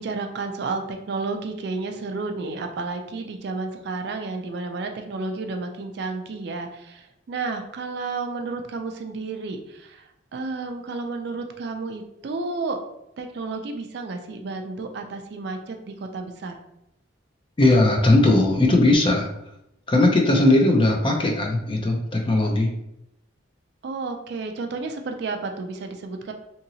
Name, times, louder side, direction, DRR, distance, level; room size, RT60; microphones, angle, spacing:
voice 1, 0.0-10.0 10.3-12.8 13.2-16.5 23.8-26.3, right 3 dB, 55° right, 5 dB, 0.3 m, -31 dB
voice 2, 17.6-19.3 19.9-22.7, left 2 dB, 25° left, 2 dB, 0.4 m, -18 dB
2.8 x 2.7 x 2.7 m, 0.84 s
head